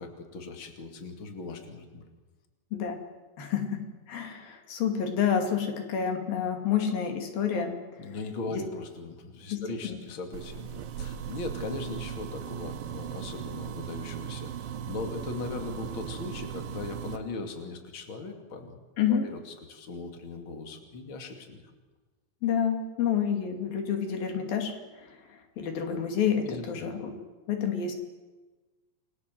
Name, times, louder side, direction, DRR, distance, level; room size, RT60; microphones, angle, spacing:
voice 1, 0.0-2.0 8.0-18.8 19.1-21.6 26.4-26.9, left 3 dB, 40° left, 4 dB, 3.1 m, -39 dB
voice 2, 3.4-3.8 4.1-7.8 8.5-8.6 9.5-10.0 19.0-19.2 22.4-24.7 25.0-25.1 25.6-27.1 27.5-27.9, left 8 dB, 90° left, 4 dB, 4.4 m, -28 dB
sound 1, 10.3-17.2, right 9 dB, 90° right, 3.2 m, -38 dB
29.0 x 22.0 x 7.8 m, 1.2 s
omnidirectional pair, 4.0 m